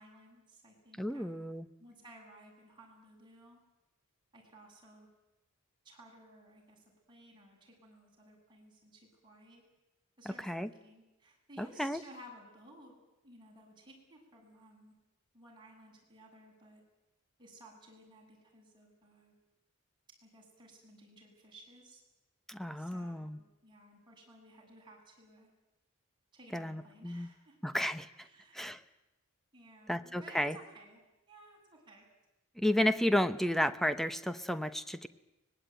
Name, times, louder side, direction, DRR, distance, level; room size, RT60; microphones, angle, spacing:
voice 1, 0.0-1.5 1.8-3.6 4.3-5.1 5.8-9.6 10.2-13.0 13.2-14.9 15.3-16.8 17.4-19.3 20.2-22.0 22.8-25.5 26.3-27.8 28.2-28.8 29.5-31.0 31.3-32.1, right 1 dB, 20° right, -2 dB, 7.5 m, -57 dB
voice 2, 1.0-1.7 10.2-10.7 11.6-12.0 22.5-23.4 26.5-27.3 27.6-28.1 28.5-28.8 29.9-30.6 32.6-35.1, left 1 dB, ahead, 11 dB, 0.9 m, -32 dB
24.5 x 19.5 x 9.2 m, 0.98 s
head